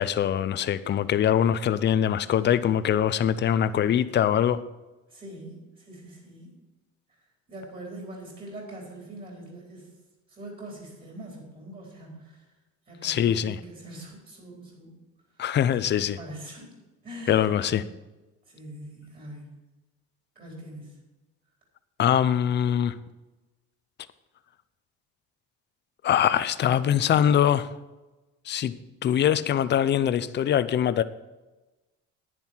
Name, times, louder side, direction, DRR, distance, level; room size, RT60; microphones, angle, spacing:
voice 1, 0.0-4.6 13.0-13.6 15.4-16.2 17.3-17.8 22.0-22.9 26.0-27.7 28.5-28.7 29.0-31.0, left 9 dB, 35° left, 0.6 m, -23 dB
voice 2, 5.1-6.5 7.1-9.9 10.3-12.6 12.9-15.0 15.3-15.4 15.8-16.7 17.0-17.8 18.5-19.5 20.3-21.0, right 1 dB, 30° right, 4.3 m, -43 dB
11.0 x 10.0 x 4.5 m
cardioid pair, 135°, 30 cm